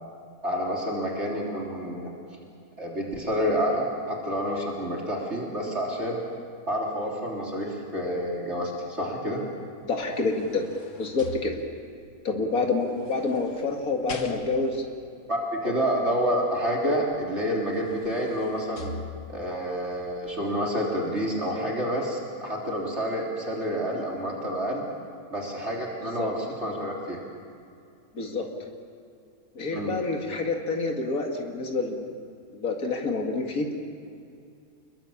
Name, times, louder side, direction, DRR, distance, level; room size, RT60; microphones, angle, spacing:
voice 1, 0.4-2.1 2.8-6.2 6.7-9.4 15.3-18.9 19.3-24.9 25.3-27.2 29.7-30.0, equal, 50° right, -2 dB, 3.8 m, -28 dB
sound 1, 9.8-12.0 12.9-14.9 17.1-17.2 17.6-19.6 20.2-20.3, left 3 dB, 60° left, 2.0 m, -43 dB
voice 2, 9.9-10.7 11.0-11.6 12.2-14.8 15.6-15.7 26.2-26.3 28.1-28.5 29.6-32.1 32.5-33.7, left 3 dB, 85° left, 1 dB, 2.6 m, -28 dB
29.5 x 21.5 x 7.3 m, 2.4 s
omnidirectional pair, 1.5 m